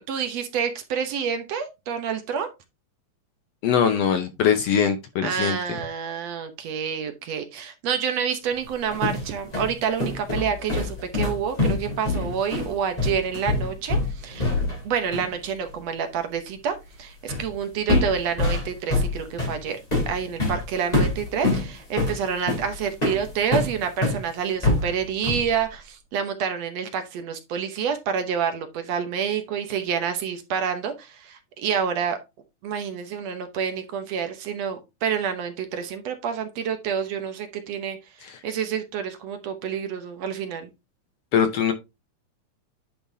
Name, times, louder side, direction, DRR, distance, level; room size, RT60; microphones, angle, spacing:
voice 1, 0.0-2.5 5.2-14.5 14.8-19.8 20.1-32.2 32.6-38.0 38.4-40.7, right 7 dB, 65° right, 7 dB, 2.0 m, -28 dB
voice 2, 3.6-5.6 20.4-20.5 38.2-38.4 41.3-41.7, left 8 dB, 70° left, 8 dB, 1.6 m, -22 dB
sound 1, 8.6-14.9 15.1-15.3 17.3-17.5 17.9-24.2 24.6-25.6, left 2 dB, 15° left, 2.8 m, -25 dB
10.0 x 5.4 x 2.7 m, 0.24 s
omnidirectional pair, 3.4 m